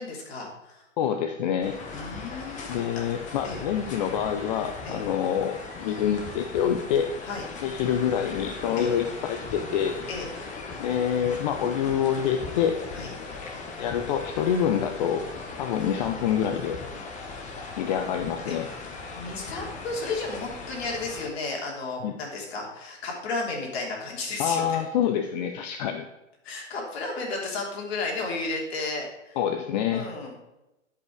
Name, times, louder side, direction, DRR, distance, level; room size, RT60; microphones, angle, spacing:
voice 1, 0.0-0.8 1.9-2.7 2.9-3.0 3.4-3.6 4.8-5.0 7.2-7.4 8.8-8.9 10.1-10.3 12.9-13.1 17.7-18.0 18.5-18.6 19.1-24.8 26.4-29.4 29.9-30.4, left 3 dB, 50° left, -1 dB, 3.3 m, -33 dB
voice 2, 1.0-1.8 2.7-7.1 7.6-10.0 10.8-12.8 13.8-15.3 15.6-16.8 17.8-18.7 22.0-22.1 24.4-26.1 29.4-30.1, left 8 dB, 35° left, 5 dB, 0.6 m, -26 dB
sound 1, 1.6-21.3, left 4 dB, 20° left, 1.2 m, -39 dB
10.5 x 5.6 x 4.9 m, 0.94 s
hypercardioid pair, 125°, 38 cm